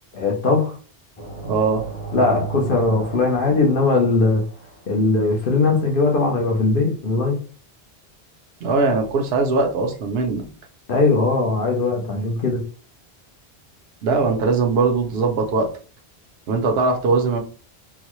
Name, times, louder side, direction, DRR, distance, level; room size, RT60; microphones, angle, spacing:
voice 1, 0.1-0.7 2.1-4.4 4.9-7.4 10.9-12.6, left 3 dB, 60° left, 0.9 m, -19 dB
sound 1, 1.2-5.0, right 5 dB, 35° left, 1.0 m, -34 dB
voice 2, 1.4-1.9 8.6-10.4 14.0-15.7 16.5-17.4, right 4 dB, 70° right, 0.9 m, -20 dB
3.9 x 2.1 x 3.0 m
omnidirectional pair, 1.1 m